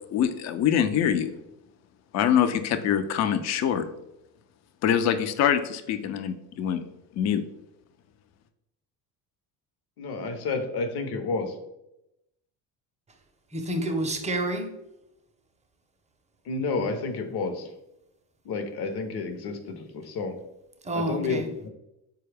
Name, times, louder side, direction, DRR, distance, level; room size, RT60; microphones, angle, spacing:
voice 1, 0.1-1.4 2.1-3.8 4.8-6.8 7.1-7.4, left 9 dB, 40° left, 9 dB, 0.4 m, -24 dB
voice 2, 10.0-11.6 16.5-17.7 18.4-20.4 20.9-21.7, left 3 dB, 55° left, 6 dB, 0.8 m, -30 dB
voice 3, 13.5-14.7 20.8-21.5, right 1 dB, 15° right, 5 dB, 0.6 m, -28 dB
4.2 x 2.3 x 3.3 m, 0.87 s
supercardioid pair, 75°, 46 cm